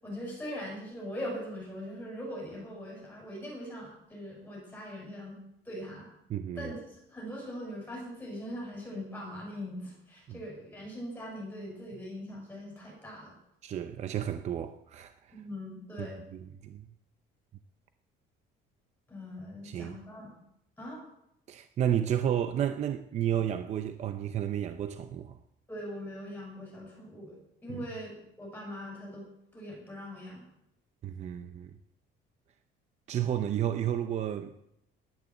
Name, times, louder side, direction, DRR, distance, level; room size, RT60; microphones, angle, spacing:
voice 1, 0.0-5.4 5.6-6.1 6.6-13.3 15.3-16.2 19.1-20.3 20.8-21.0 25.7-27.4 27.6-28.1 28.4-29.3 29.5-30.4, equal, 10° left, 6.5 m, -41 dB
voice 2, 6.3-6.7 10.3-10.4 13.6-15.3 16.0-16.1 16.3-16.9 19.6-20.0 21.5-25.4 31.0-31.7 33.1-34.6, right 10 dB, 35° right, 0.6 m, -32 dB
12.0 x 9.6 x 7.7 m
cardioid pair, 175°, 20 cm